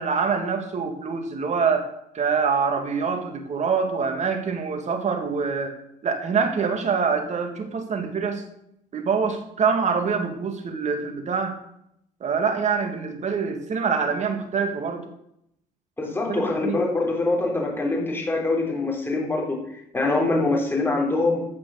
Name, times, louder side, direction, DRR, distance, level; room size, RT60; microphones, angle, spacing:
voice 1, 0.0-1.9 2.1-5.8 6.0-8.4 8.9-11.6 12.2-15.1 16.3-16.8, right 5 dB, 45° right, 6 dB, 2.3 m, -25 dB
voice 2, 16.0-19.6 19.9-21.5, left 2 dB, 15° left, -1 dB, 3.9 m, -24 dB
15.0 x 6.2 x 6.5 m, 0.77 s
cardioid pair, 110°, 17 cm